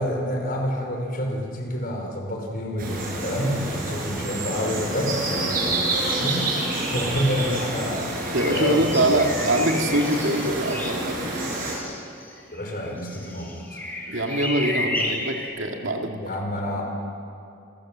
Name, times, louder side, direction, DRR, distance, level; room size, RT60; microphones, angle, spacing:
voice 1, 0.0-6.4 6.8-9.3 12.5-13.8 16.2-16.8, equal, 50° left, 1 dB, 4.9 m, -28 dB
sound 1, 2.8-11.8, right 2 dB, 50° right, 5.9 m, -28 dB
sound 2, 6.0-7.1 7.4-15.5, left 1 dB, 10° left, 3.5 m, -33 dB
voice 2, 8.3-11.2 14.1-16.2 16.7-16.8, right 1 dB, 75° right, 3 dB, 2.3 m, -24 dB
28.0 x 15.5 x 7.6 m, 2.7 s
head